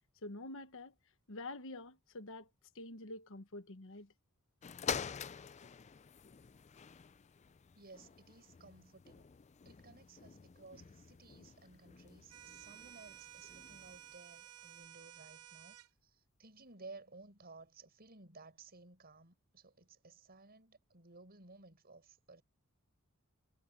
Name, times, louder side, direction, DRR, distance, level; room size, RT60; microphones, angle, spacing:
voice 1, 0.2-0.9 1.3-2.5 2.7-4.1, left 2 dB, 60° left, 1.3 m, -47 dB
sound 1, 4.6-14.2 14.8-14.9, left 7 dB, 30° left, 0.4 m, -47 dB
voice 2, 7.7-9.3 9.6-22.4, right 3 dB, 45° right, 6.6 m, -57 dB
sound 2, 12.3-15.9, right 12 dB, 85° right, 0.7 m, -55 dB
head